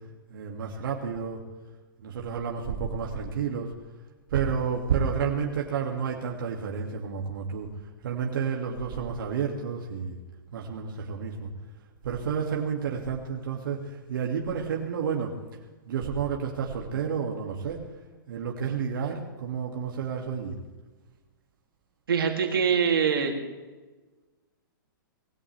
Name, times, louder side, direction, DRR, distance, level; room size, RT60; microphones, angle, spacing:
voice 1, 0.3-1.4 2.0-3.7 4.3-7.7 8.0-10.2 10.5-11.5 12.0-15.4 15.8-17.8 18.3-20.6, right 6 dB, 70° right, -1 dB, 2.5 m, -30 dB
voice 2, 22.1-23.4, right 6 dB, 90° right, 1 dB, 3.0 m, -24 dB
20.0 x 16.5 x 3.5 m, 1.3 s
hypercardioid pair, 145°, 12 cm